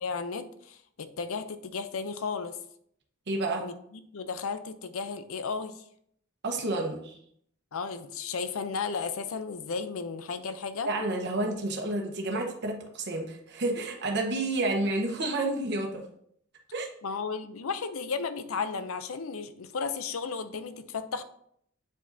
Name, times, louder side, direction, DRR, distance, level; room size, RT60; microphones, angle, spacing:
voice 1, 0.0-2.6 3.6-5.8 7.7-10.9 17.0-21.2, left 5 dB, 80° left, 11 dB, 0.6 m, -34 dB
voice 2, 3.3-3.7 6.4-7.2 10.9-16.0 16.7-16.9, right 2 dB, 55° right, 2 dB, 1.0 m, -30 dB
8.0 x 4.9 x 2.7 m, 0.68 s
head